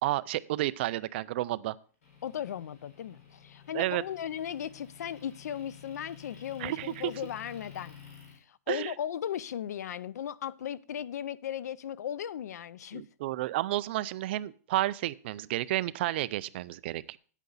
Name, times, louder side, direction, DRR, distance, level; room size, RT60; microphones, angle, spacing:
voice 1, 0.0-1.8 3.7-4.0 6.6-7.1 8.7-8.9 12.9-17.2, right 15 dB, 40° right, 0.4 m, -31 dB
Motor vehicle (road) / Engine, 2.0-8.4, left 7 dB, 60° left, 4.2 m, -52 dB
voice 2, 2.2-8.0 8.3-13.0, left 9 dB, 80° left, 0.5 m, -37 dB
9.0 x 8.3 x 4.0 m
hypercardioid pair, 165°, 9 cm